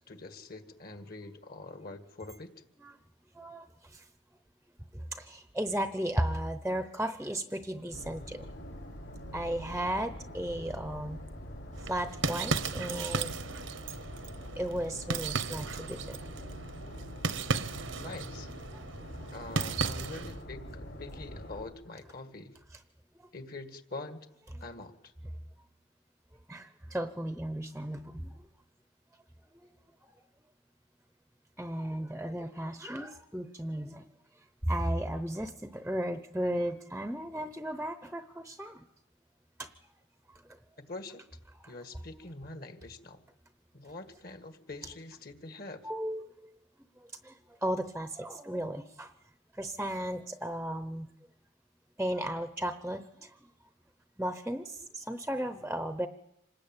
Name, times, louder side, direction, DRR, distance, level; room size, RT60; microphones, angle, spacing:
voice 1, 0.0-2.5 18.0-18.5 19.3-22.5 23.3-24.3 24.6-25.1 40.8-41.2 41.7-43.2 43.7-45.9, left 2 dB, 45° left, 8 dB, 1.9 m, -44 dB
voice 2, 5.1-8.4 9.3-11.4 11.9-13.3 14.6-16.2 26.5-28.3 31.6-34.0 34.7-38.8 39.6-39.7 41.6-41.7 45.8-46.3 47.2-47.3 47.6-49.1 49.6-51.1 52.0-53.3 54.2-56.1, right 1 dB, 5° right, 9 dB, 0.8 m, -35 dB
sound 1, 7.9-21.6, equal, 65° left, 5.8 m, -44 dB
sound 2, 11.7-20.4, right 4 dB, 70° right, 1.2 m, -35 dB
26.5 x 20.0 x 9.0 m, 0.86 s
head